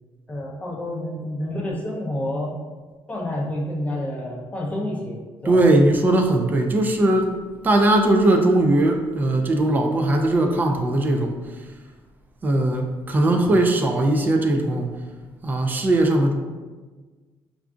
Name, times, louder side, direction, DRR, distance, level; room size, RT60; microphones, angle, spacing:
voice 1, 0.3-2.6 3.1-5.6 13.3-13.6, left 1 dB, 15° left, -3 dB, 0.6 m, -29 dB
voice 2, 5.5-7.3 7.6-11.3 12.4-14.9 15.4-16.3, right 1 dB, 20° right, 3 dB, 0.3 m, -19 dB
4.6 x 2.5 x 2.3 m, 1.3 s
cardioid pair, 150°, 9 cm